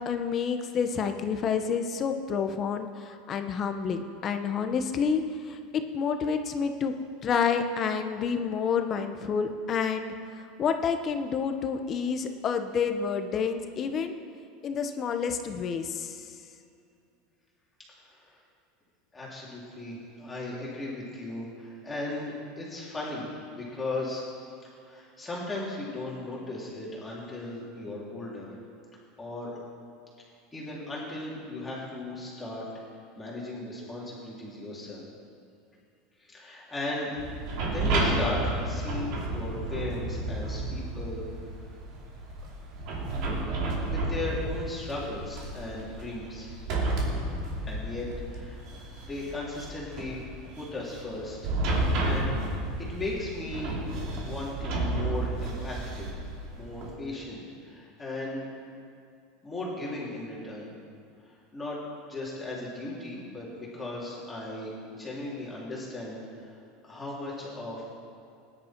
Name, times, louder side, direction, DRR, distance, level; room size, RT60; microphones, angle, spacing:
voice 1, 0.1-5.2 5.5-5.6 5.9-6.9 7.2-10.1 10.6-14.1 14.6-16.2, left 6 dB, 25° left, 7 dB, 0.8 m, -29 dB
voice 2, 19.1-24.3 24.8-28.5 29.2-29.6 30.5-32.6 33.2-35.0 36.2-37.2 37.6-41.2 43.9-46.6 47.6-48.6 49.1-50.2 50.6-52.3 52.8-53.8 54.2-56.1 56.5-58.5 59.4-60.7 61.5-61.8 62.1-66.2 66.9-67.8, left 2 dB, 10° left, -6 dB, 3.3 m, -36 dB
sound 1, 37.2-56.9, right 2 dB, 50° right, 2.7 m, -32 dB
19.0 x 10.5 x 4.5 m, 2.5 s
supercardioid pair, 160°, 0 cm